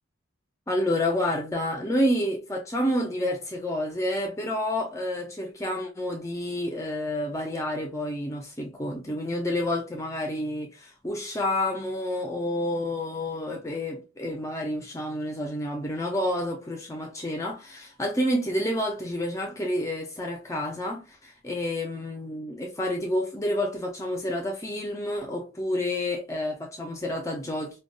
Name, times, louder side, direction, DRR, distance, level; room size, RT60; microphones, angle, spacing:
voice 1, 0.7-27.8, left 1 dB, 15° left, 0.5 m, -29 dB
5.0 x 2.2 x 2.2 m
head